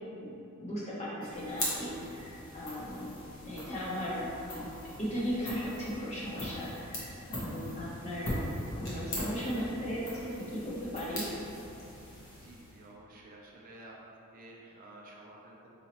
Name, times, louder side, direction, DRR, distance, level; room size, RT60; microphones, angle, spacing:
voice 1, 0.6-3.1 3.4-4.3 4.5-4.7 5.0-8.3 8.8-11.2, equal, 30° left, -8 dB, 0.8 m, -37 dB
sound 1, 1.2-12.9, left 1 dB, 60° left, 0.9 m, -41 dB
voice 2, 12.4-13.9 14.3-15.7, right 1 dB, 40° right, -2 dB, 0.4 m, -52 dB
4.1 x 2.8 x 2.9 m, 2.9 s
head